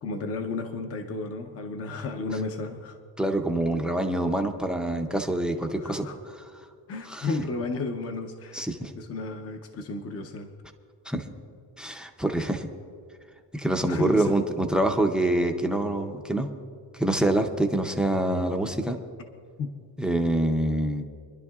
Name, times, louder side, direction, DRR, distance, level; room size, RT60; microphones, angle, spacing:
voice 1, 0.0-3.0 5.8-6.2 6.9-8.7 9.0-10.5 13.8-14.3 19.6-19.7, left 3 dB, 35° left, 5 dB, 0.8 m, -33 dB
voice 2, 3.2-6.1 7.1-7.3 8.5-8.9 11.1-11.2 11.8-12.7 13.5-16.5 16.9-19.0 20.0-21.0, right 1 dB, ahead, 6 dB, 0.5 m, -26 dB
26.5 x 11.5 x 2.4 m, 2.2 s
cardioid pair, 165°, 41 cm